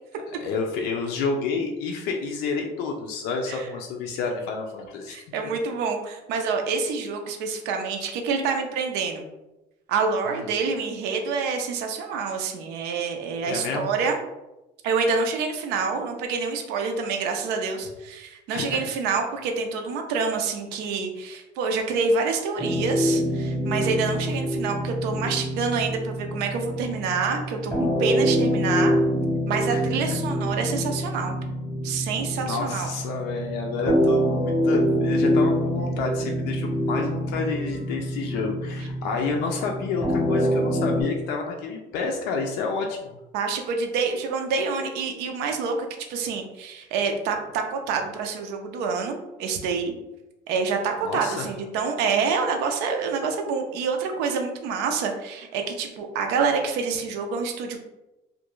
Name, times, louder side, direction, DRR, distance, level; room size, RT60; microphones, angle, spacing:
voice 1, 0.4-5.2 13.5-13.9 18.5-18.8 29.7-29.8 32.4-43.2 51.0-51.5, left 4 dB, 85° left, 2 dB, 0.4 m, -29 dB
voice 2, 5.1-9.3 9.9-14.2 14.8-28.9 29.5-31.3 31.8-32.9 43.3-49.9 50.5-57.8, right 5 dB, 90° right, 4 dB, 0.4 m, -27 dB
sound 1, 22.6-41.0, equal, 5° right, 0.7 m, -25 dB
2.4 x 2.2 x 3.0 m, 1.0 s
cardioid pair, 180°, 16 cm